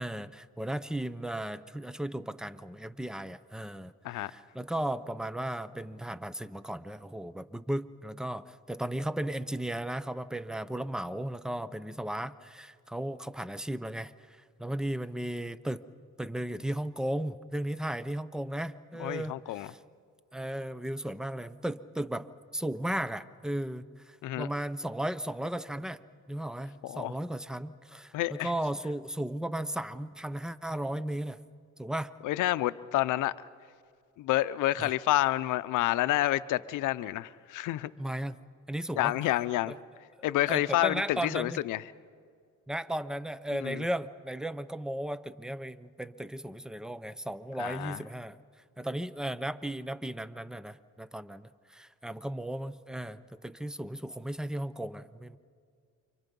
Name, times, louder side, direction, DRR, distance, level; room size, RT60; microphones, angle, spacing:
voice 1, 0.0-3.9 4.2-14.1 14.6-15.8 16.2-19.3 19.6-19.8 20.3-31.4 31.8-32.1 34.8-34.9 38.0-38.4 38.7-39.1 40.5-41.6 42.7-48.4 48.8-55.4, right 1 dB, ahead, 15 dB, 0.7 m, -35 dB
voice 2, 19.0-19.7 24.2-24.5 26.8-27.1 28.1-28.5 32.2-33.3 34.2-37.9 39.0-39.7 40.2-41.8 43.5-43.9 47.6-48.0, left 15 dB, 85° left, 15 dB, 0.7 m, -29 dB
29.0 x 25.0 x 5.4 m, 2.2 s
cardioid pair, 90°, 30 cm